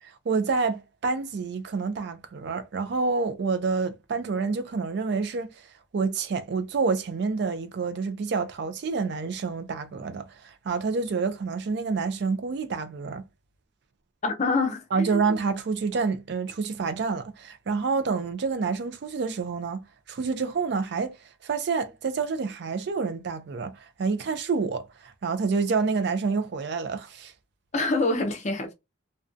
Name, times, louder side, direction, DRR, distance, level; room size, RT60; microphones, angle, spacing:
voice 1, 0.3-5.7 5.9-13.2 14.9-27.3, right 4 dB, 55° right, 0.4 m, -28 dB
voice 2, 14.2-14.8 15.1-15.2 27.7-28.7, left 3 dB, 35° left, 0.5 m, -25 dB
2.5 x 2.2 x 2.5 m
head